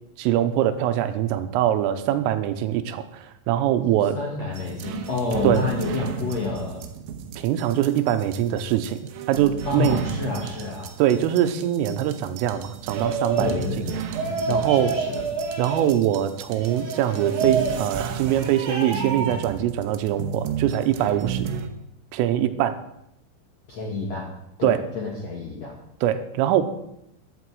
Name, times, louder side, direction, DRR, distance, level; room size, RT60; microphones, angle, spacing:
voice 1, 0.2-4.2 5.4-5.6 7.4-9.0 9.3-10.0 11.0-13.8 14.5-14.9 15.6-21.5 22.1-22.8 24.6-24.8 26.0-26.6, right 11 dB, 90° right, 10 dB, 3.4 m, -23 dB
voice 2, 4.1-6.9 9.6-11.0 13.4-14.0 14.4-15.1 23.7-24.3 24.6-25.7, left 3 dB, 65° left, -2 dB, 1.6 m, -29 dB
sound 1, 4.5-21.7, right 6 dB, 75° right, 3.0 m, -34 dB
sound 2, 12.9-13.6 14.1-15.9 16.5-17.8 18.2-19.4, right 4 dB, 40° right, 4.8 m, -28 dB
14.5 x 11.5 x 4.8 m, 0.80 s
omnidirectional pair, 5.9 m